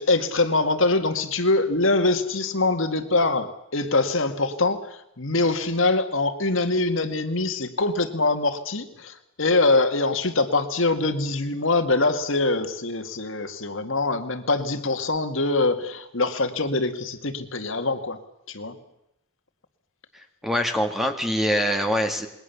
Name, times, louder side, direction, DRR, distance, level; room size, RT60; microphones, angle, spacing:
voice 1, 0.0-18.2 18.5-18.8, left 2 dB, 60° left, 8 dB, 2.0 m, -24 dB
voice 2, 20.4-22.3, equal, ahead, 5 dB, 2.2 m, -24 dB
27.5 x 21.5 x 7.1 m, 0.84 s
head